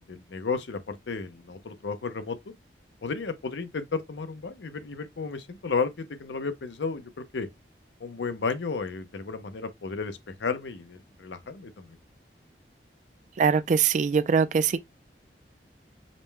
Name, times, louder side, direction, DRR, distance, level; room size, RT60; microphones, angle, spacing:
voice 1, 0.0-2.4 3.0-7.5 8.0-11.9, left 4 dB, 90° left, 0.6 m, -33 dB
voice 2, 13.4-14.8, right 6 dB, 45° right, 0.3 m, -22 dB
5.1 x 2.1 x 3.3 m
head